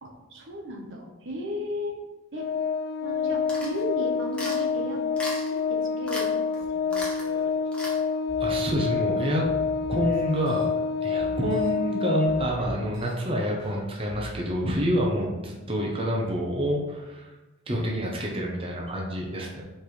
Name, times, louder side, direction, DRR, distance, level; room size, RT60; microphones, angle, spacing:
voice 1, 0.0-2.0 2.3-2.5 3.0-5.4 5.7-6.3 6.7-7.1 7.4-7.5 17.7-18.2, equal, 60° right, 1 dB, 1.0 m, -35 dB
Organ, 2.3-13.1, left 5 dB, 50° left, 0.3 m, -28 dB
sound 1, 3.5-3.8 4.3-4.6 5.2-5.6 6.1-6.3 6.5-6.6 6.9-7.3 7.7-8.0, left 1 dB, 5° left, 1.3 m, -36 dB
sound 2, 6.6-6.7 6.9-7.5 8.3-8.4 9.4-10.6 11.2-11.7 12.3-13.1 13.6-14.3, left 1 dB, 25° left, 1.7 m, -43 dB
voice 2, 8.4-9.5 9.9-10.7 11.0-17.3 17.7-19.6, equal, 25° right, -2 dB, 0.9 m, -28 dB
4.7 x 4.4 x 5.1 m, 1.1 s
head